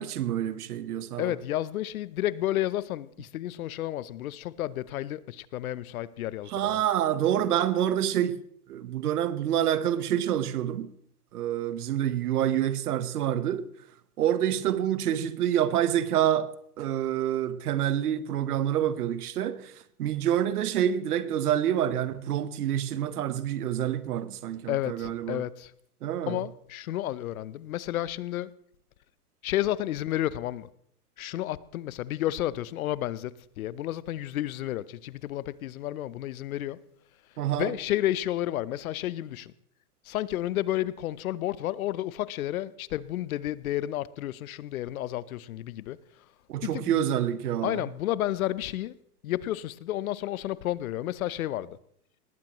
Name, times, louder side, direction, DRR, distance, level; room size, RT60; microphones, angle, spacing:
voice 1, 0.0-1.3 6.5-8.4 8.7-10.9 11.3-13.7 14.2-19.7 20.0-25.4 26.0-26.4 37.4-37.7 46.5-47.8, right 10 dB, 75° right, 1.2 m, -27 dB
voice 2, 1.2-6.8 24.7-25.7 26.3-28.5 29.4-30.7 31.2-36.8 37.6-39.5 40.0-46.0 46.6-47.1 47.6-49.0 49.2-51.8, left 13 dB, 65° left, 0.8 m, -31 dB
19.5 x 15.0 x 3.1 m
hypercardioid pair, 140°, 46 cm